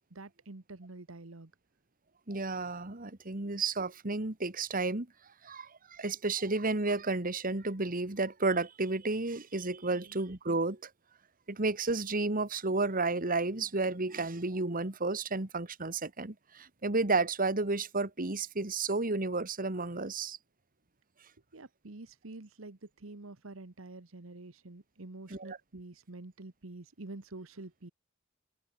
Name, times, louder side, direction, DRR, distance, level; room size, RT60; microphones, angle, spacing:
voice 1, 0.1-1.5 9.9-10.1 21.5-27.9, right 2 dB, 70° right, 1.3 m, -47 dB
voice 2, 2.3-5.1 5.4-10.9 11.5-20.4 25.3-25.6, right 3 dB, 40° right, 1.9 m, -32 dB
head